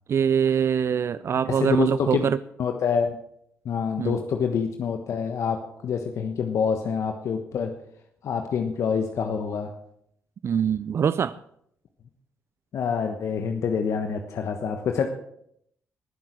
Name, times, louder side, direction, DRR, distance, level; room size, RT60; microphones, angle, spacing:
voice 1, 0.1-2.4 4.0-4.2 10.4-11.4, right 7 dB, 55° right, 16 dB, 0.4 m, -23 dB
voice 2, 1.6-2.2 2.6-3.2 3.6-7.7 8.2-9.7 12.7-15.1, left 6 dB, 65° left, 5 dB, 1.2 m, -26 dB
19.5 x 7.5 x 6.1 m, 0.72 s
supercardioid pair, 60°, 5 cm